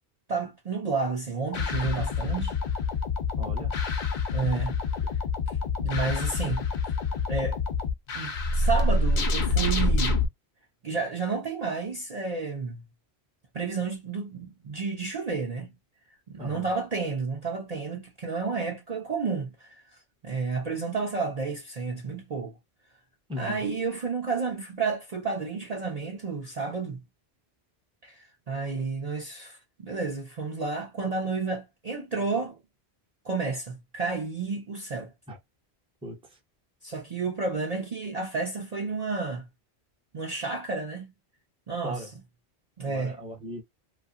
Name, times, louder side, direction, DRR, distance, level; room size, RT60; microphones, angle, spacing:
voice 1, 0.3-2.6 4.3-4.8 5.8-6.7 7.3-7.6 8.1-10.2 10.8-12.8 13.5-15.7 16.3-19.7 20.2-22.5 23.4-27.0 28.0-32.6 33.2-35.1 36.8-39.5 40.1-41.1 41.7-42.0 42.8-43.2, right 4 dB, 45° right, 0.6 m, -31 dB
sound 1, 1.5-10.3, left 3 dB, 50° left, 0.6 m, -27 dB
voice 2, 3.4-3.7 16.4-16.7 23.3-23.6 35.3-35.4 36.0-36.4 41.8-42.1 42.8-43.6, equal, 5° right, 0.6 m, -38 dB
2.7 x 2.4 x 2.4 m
omnidirectional pair, 1.1 m